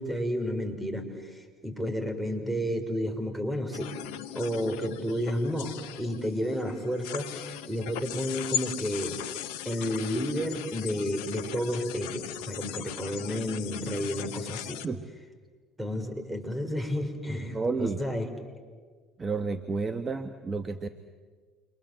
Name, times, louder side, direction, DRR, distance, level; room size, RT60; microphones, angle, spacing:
voice 1, 0.0-4.0 4.3-9.2 9.6-14.8 15.8-18.3, equal, 10° right, 6 dB, 5.8 m, -31 dB
sound 1, 3.7-14.9, left 10 dB, 80° left, 1.2 m, -38 dB
voice 2, 17.5-18.0 19.2-20.9, right 4 dB, 30° right, 9 dB, 1.5 m, -30 dB
29.0 x 25.0 x 7.7 m, 1.5 s
hypercardioid pair, 75°, 0 cm